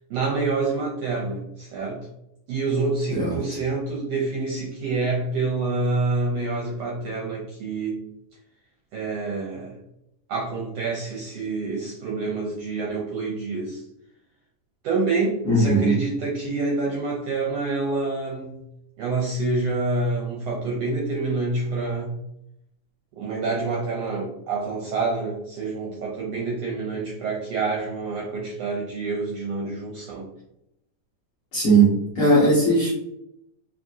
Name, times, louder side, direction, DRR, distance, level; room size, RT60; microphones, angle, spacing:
voice 1, 0.1-2.1 2.5-8.0 8.9-9.7 10.3-13.8 14.8-18.6 19.0-22.2 23.1-30.3, right 3 dB, 75° right, -4 dB, 1.5 m, -27 dB
voice 2, 15.4-16.0 31.5-32.9, right 2 dB, 55° left, -7 dB, 1.6 m, -18 dB
5.0 x 3.1 x 2.6 m, 0.81 s
omnidirectional pair, 3.8 m